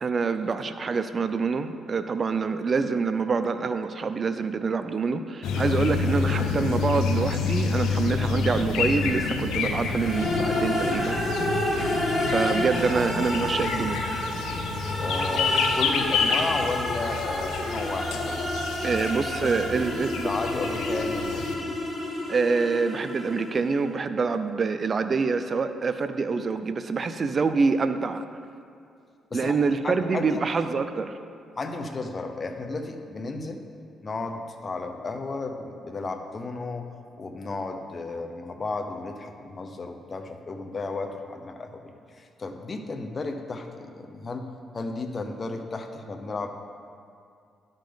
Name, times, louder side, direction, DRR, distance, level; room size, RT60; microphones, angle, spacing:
voice 1, 0.0-11.2 12.3-14.0 18.8-20.3 22.3-28.2 29.3-31.1, right 4 dB, 40° right, 10 dB, 0.4 m, -26 dB
sound 1, 5.4-21.5, left 5 dB, 85° left, 0.6 m, -28 dB
sound 2, 9.9-23.8, left 1 dB, 20° left, 1.8 m, -30 dB
voice 2, 15.0-18.5 18.8-19.0 19.4-19.9 20.2-21.8 29.3-29.5 29.8-30.4 31.6-33.6 34.0-36.9 37.2-44.5 44.7-46.5, left 3 dB, 35° left, 5 dB, 0.8 m, -33 dB
11.5 x 5.2 x 3.9 m, 2.5 s
cardioid pair, 90°, 0 cm